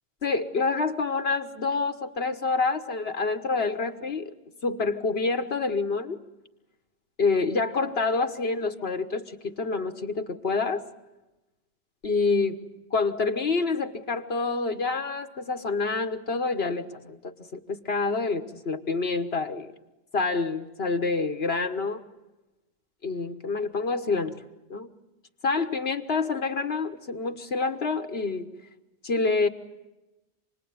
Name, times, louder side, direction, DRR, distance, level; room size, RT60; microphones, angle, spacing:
voice 1, 0.2-4.3 4.6-6.2 7.2-10.8 12.0-12.6 12.9-19.7 20.1-22.0 23.0-24.4 24.7-24.9 25.4-28.5 29.0-29.5, left 4 dB, 70° left, 6 dB, 1.6 m, -27 dB
27.5 x 20.5 x 9.4 m, 1.0 s
omnidirectional pair, 1.1 m